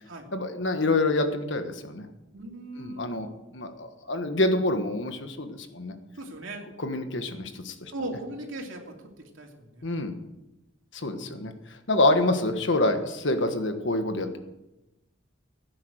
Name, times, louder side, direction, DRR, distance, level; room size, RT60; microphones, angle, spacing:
voice 1, 0.3-2.0 2.8-5.9 6.8-7.9 9.8-10.1 10.9-11.5 11.9-14.4, left 2 dB, 70° left, 7 dB, 1.5 m, -27 dB
voice 2, 2.3-3.2 6.1-6.6 7.9-9.0 9.3-9.8 11.1-11.5, right 1 dB, 85° right, 1 dB, 2.9 m, -38 dB
16.5 x 9.6 x 6.5 m, 0.98 s
head